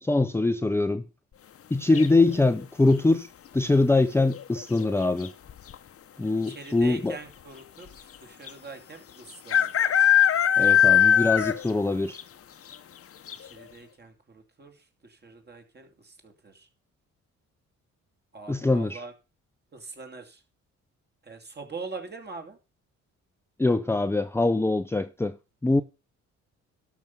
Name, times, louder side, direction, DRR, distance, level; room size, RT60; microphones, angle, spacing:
voice 1, 0.0-1.0 1.7-5.3 6.2-7.2 10.6-12.2 18.5-19.0 23.6-25.4 25.6-25.8, left 2 dB, 10° left, 0.5 m, -23 dB
sound 1, 1.9-2.4 4.2-4.6 4.9-5.0 5.2-5.7 6.5-6.6 6.8-6.9 8.5-8.6 9.5-11.8 12.1-12.2 12.7-12.8 13.3-13.4, left 9 dB, 50° left, 0.9 m, -20 dB
voice 2, 6.5-10.0 13.5-14.7 15.0-16.7 18.3-19.1 19.7-20.4 21.2-22.6, right 4 dB, 35° right, 2.7 m, -43 dB
12.0 x 6.0 x 5.3 m
cardioid pair, 90°, 30 cm